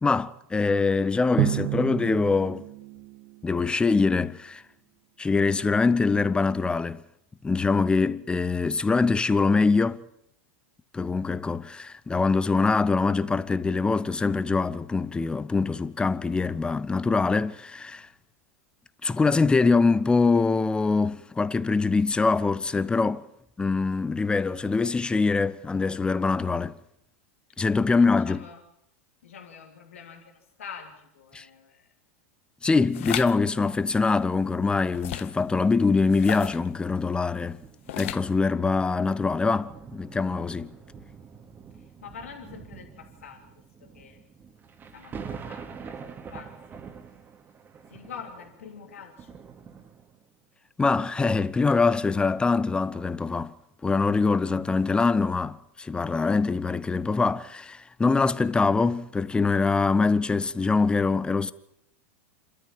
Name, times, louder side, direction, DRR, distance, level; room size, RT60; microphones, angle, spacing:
voice 1, 0.0-2.6 3.4-4.6 5.2-7.0 7.4-10.0 10.9-18.1 19.0-23.3 23.6-26.7 27.6-28.4 31.3-31.5 32.6-37.6 37.9-40.7 50.8-53.5 53.8-61.5, left 4 dB, 15° left, 1.0 m, -24 dB
Drum, 1.4-4.0, right 15 dB, 60° right, 1.6 m, -31 dB
voice 2, 27.5-28.6 29.2-31.9 41.7-43.5 43.8-44.2 44.9-46.8 47.9-49.4, left 6 dB, 85° left, 3.1 m, -46 dB
sound 1, 32.9-33.3 34.9-35.4 36.1-36.7 37.9-38.4, left 14 dB, 70° left, 0.8 m, -34 dB
sound 2, 37.6-50.4 51.0-51.2, right 6 dB, 30° right, 2.3 m, -45 dB
27.5 x 13.5 x 8.9 m
hypercardioid pair, 100°, 7 cm